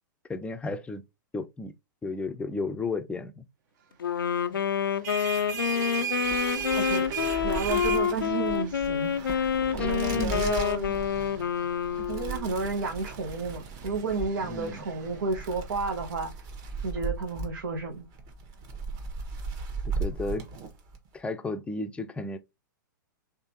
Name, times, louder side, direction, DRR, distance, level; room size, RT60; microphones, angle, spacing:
voice 1, 0.3-1.0 1.3-1.7 2.0-3.4 9.8-10.4 14.4-14.8 20.0-20.5 21.1-22.4, left 3 dB, 10° left, 0.5 m, -33 dB
Wind instrument woodwind instrument, 4.0-12.6, left 8 dB, 90° left, 0.4 m, -28 dB
sound 1, 4.8-16.1, right 8 dB, 55° right, 1.2 m, -38 dB
sound 2, 6.2-21.1, right 4 dB, 35° right, 1.3 m, -37 dB
voice 2, 7.4-10.9 12.1-16.3 16.8-18.1, right 4 dB, 80° right, 0.9 m, -32 dB
3.6 x 3.4 x 2.8 m
hypercardioid pair, 115°, 11 cm